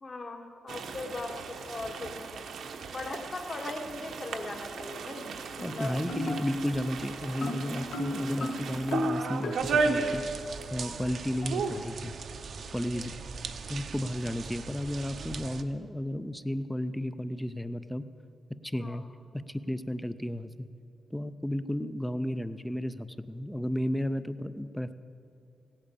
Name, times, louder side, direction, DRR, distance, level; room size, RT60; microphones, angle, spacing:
voice 1, 0.0-2.5 2.9-5.3 5.6-5.9 12.9-13.1 18.8-19.0, left 2 dB, 30° left, 4 dB, 1.3 m, -39 dB
sound 1, 0.7-10.8 11.1-11.2 11.4-11.8, right 4 dB, 85° right, 1.1 m, -35 dB
sound 2, 4.9-5.2 5.6-6.7 7.4-9.9 10.8-11.5, left 2 dB, 85° left, 1.4 m, -35 dB
voice 2, 5.6-10.4 10.7-12.1 12.7-13.1 13.7-18.1 18.6-19.0 19.3-20.7 21.1-24.9, equal, 5° left, 13 dB, 0.4 m, -33 dB
sound 3, 9.6-15.6, right 5 dB, 60° right, 0.7 m, -41 dB
16.5 x 8.8 x 8.3 m, 2.5 s
wide cardioid pair, 150°, 0 cm